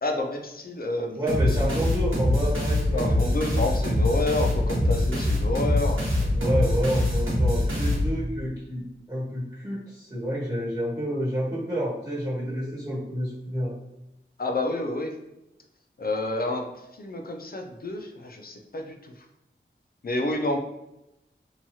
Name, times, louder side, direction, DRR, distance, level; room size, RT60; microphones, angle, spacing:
voice 1, 0.0-1.2 1.6-1.8 2.9-6.3 14.4-15.1 16.0-16.7 17.0-19.1 20.0-20.6, left 2 dB, 45° left, 3 dB, 0.4 m, -29 dB
voice 2, 1.2-3.0 6.3-13.7, equal, 15° right, -10 dB, 1.2 m, -29 dB
sound 1, 1.3-8.4, left 1 dB, 70° right, 1.0 m, -24 dB
2.9 x 2.3 x 2.7 m, 0.91 s
wide cardioid pair, 65°, 21 cm